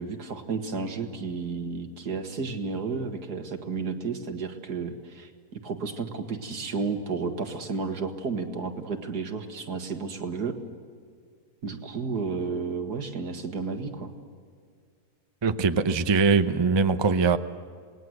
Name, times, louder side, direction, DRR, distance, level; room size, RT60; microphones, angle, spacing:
voice 1, 0.0-10.6 11.6-14.1, right 4 dB, 80° right, 5 dB, 2.4 m, -32 dB
voice 2, 15.4-17.4, right 4 dB, 25° right, 10 dB, 0.5 m, -22 dB
27.5 x 19.5 x 8.0 m, 2.1 s
omnidirectional pair, 1.7 m